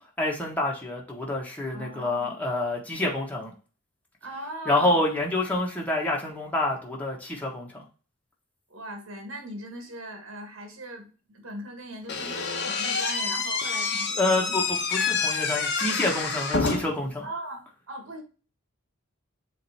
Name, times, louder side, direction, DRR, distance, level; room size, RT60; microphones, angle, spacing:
voice 1, 0.2-3.5 4.6-7.8 14.2-17.2, left 2 dB, 10° left, -3 dB, 1.5 m, -27 dB
voice 2, 1.7-2.4 4.2-5.1 8.7-14.7 17.2-18.2, right 1 dB, 65° right, 4 dB, 1.7 m, -39 dB
Slam / Squeak, 12.1-17.1, left 4 dB, 60° left, 1.2 m, -28 dB
7.5 x 3.0 x 4.3 m, 0.36 s
head